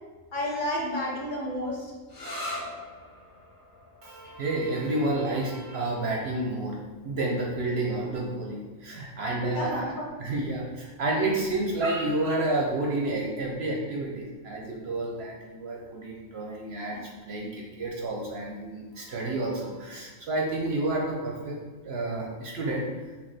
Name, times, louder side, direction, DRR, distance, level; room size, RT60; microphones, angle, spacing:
voice 1, 0.3-1.9 9.4-10.1 16.9-17.0, left 1 dB, 45° left, -3 dB, 0.7 m, -31 dB
sound 1, 2.1-9.5, left 1 dB, 70° left, 1.8 m, -44 dB
voice 2, 4.0-6.8 7.0-9.9 10.2-17.0 17.2-21.6 21.8-22.8, right 2 dB, 60° right, -1 dB, 0.7 m, -30 dB
5.9 x 2.3 x 3.3 m, 1.3 s
omnidirectional pair, 1.4 m